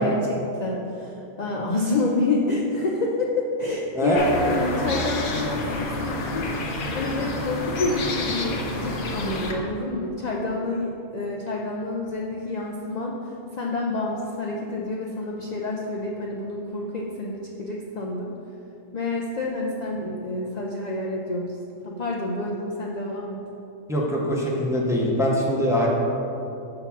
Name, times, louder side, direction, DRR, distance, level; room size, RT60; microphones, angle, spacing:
voice 1, 0.0-18.3 18.9-21.6 21.8-23.4, left 2 dB, 65° left, -2 dB, 0.4 m, -28 dB
voice 2, 3.9-4.3 23.9-25.9, equal, 5° right, -3 dB, 0.6 m, -23 dB
sound 1, 4.1-9.5, left 2 dB, 50° left, 0.8 m, -29 dB
5.7 x 3.8 x 5.9 m, 2.9 s
omnidirectional pair, 1.3 m